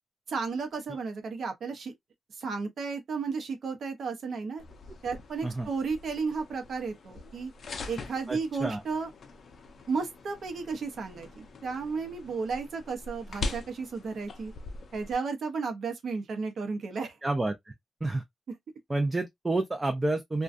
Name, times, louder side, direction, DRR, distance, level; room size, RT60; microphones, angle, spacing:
voice 1, 0.3-1.9 2.3-4.6 5.0-7.5 7.9-9.1 9.9-14.5 14.9-17.2, right 4 dB, 65° right, 0.6 m, -33 dB
sound 1, 4.6-15.1, left 3 dB, 55° left, 0.4 m, -42 dB
voice 2, 8.3-8.8 17.2-17.7 18.0-18.2 18.9-20.4, right 2 dB, 20° right, 0.3 m, -29 dB
2.4 x 2.2 x 2.4 m
wide cardioid pair, 130°, 0 cm